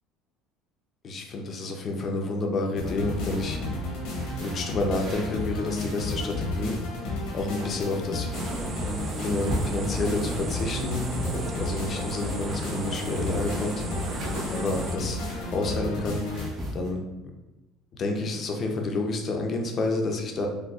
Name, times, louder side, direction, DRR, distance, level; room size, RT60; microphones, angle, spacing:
voice 1, 1.0-3.6 4.4-6.8 7.1-8.3 9.2-13.8 14.5-15.2 15.5-16.2 16.7-17.0 18.0-20.5, left 2 dB, 40° left, 2 dB, 0.5 m, -29 dB
sound 1, 2.8-16.5, left 2 dB, 75° left, 0.9 m, -32 dB
sound 2, 3.1-3.7 4.1-5.4 5.7-6.9 7.2-10.6 10.9-11.8 12.1-15.6 16.1-16.9, right 1 dB, 55° right, 0.9 m, -39 dB
sound 3, 8.3-15.0, right 4 dB, 35° right, 0.3 m, -36 dB
4.0 x 2.2 x 2.3 m, 1.0 s
supercardioid pair, 105°, 0 cm